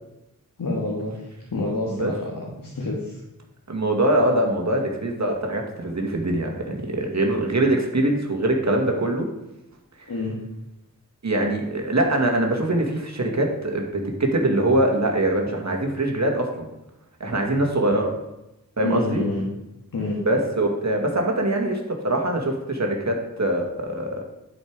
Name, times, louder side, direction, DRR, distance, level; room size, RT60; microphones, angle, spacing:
voice 1, 0.6-3.2 10.1-10.3 18.8-19.4 19.9-20.2, left 2 dB, 75° left, -3 dB, 1.9 m, -28 dB
voice 2, 3.7-9.3 11.2-16.7 17.2-18.1 18.8-19.2 20.2-24.2, right 1 dB, 50° right, 1 dB, 2.0 m, -23 dB
11.0 x 5.1 x 4.7 m, 0.90 s
cardioid pair, 45°, 34 cm